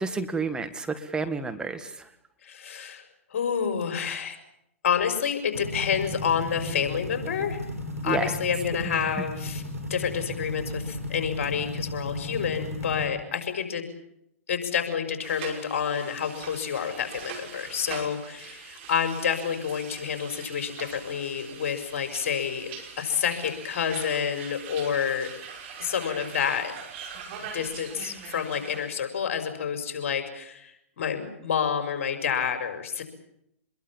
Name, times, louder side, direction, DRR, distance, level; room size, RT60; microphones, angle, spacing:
voice 1, 0.0-2.1 8.1-8.3, right 4 dB, 10° right, 7 dB, 1.8 m, -30 dB
voice 2, 2.4-4.4 4.8-7.6 8.0-9.6 9.9-13.8 14.5-25.3 25.8-26.7 27.5-33.0, left 7 dB, 60° left, 7 dB, 5.6 m, -29 dB
sound 1, 5.5-13.1, left 1 dB, 90° right, 6.3 m, -35 dB
sound 2, 15.2-28.9, right 6 dB, 50° right, 5.7 m, -42 dB
25.5 x 22.0 x 7.4 m, 0.78 s
figure-of-eight pair, 115°, 8 cm